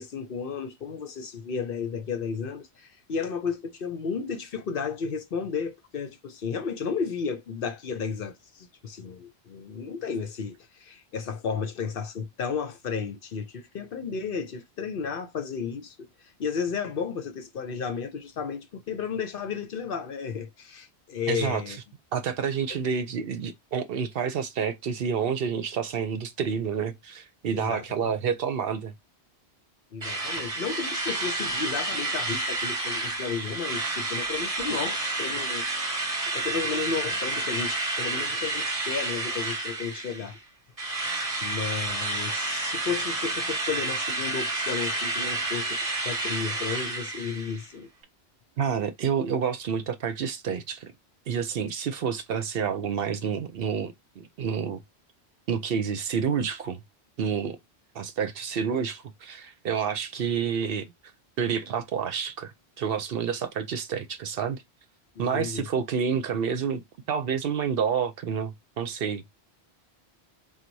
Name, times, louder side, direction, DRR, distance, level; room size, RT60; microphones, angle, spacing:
voice 1, 0.0-21.8 22.7-22.9 27.5-28.0 29.9-40.4 40.9-41.1 41.4-47.9 65.2-65.7, left 6 dB, 60° left, 0.8 m, -33 dB
voice 2, 21.3-21.7 22.1-28.9 48.6-50.9 51.3-54.8 55.5-56.8 57.2-57.6 57.9-60.9 61.4-64.6 65.2-66.8 67.1-69.2, right 7 dB, 65° right, 0.8 m, -29 dB
Drill, 30.0-40.4 40.8-47.7, right 2 dB, 35° right, 1.1 m, -30 dB
3.9 x 2.2 x 4.5 m
omnidirectional pair, 1.1 m